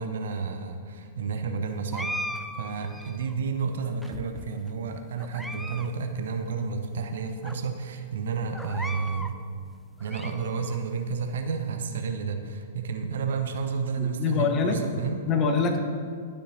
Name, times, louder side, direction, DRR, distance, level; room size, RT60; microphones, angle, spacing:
voice 1, 0.0-2.1 2.6-9.4 10.0-15.2, right 5 dB, 60° right, 6 dB, 0.7 m, -31 dB
sound 1, 1.9-3.3 4.0-4.7 5.2-5.9 6.2-6.3 7.0-7.1 7.4-7.6 8.5-9.4 9.8-10.8, equal, ahead, 0.3 m, -37 dB
voice 2, 14.0-14.8 15.3-15.8, left 5 dB, 30° left, 5 dB, 0.9 m, -24 dB
12.0 x 6.7 x 2.7 m, 2.1 s
figure-of-eight pair, 105°, 0 cm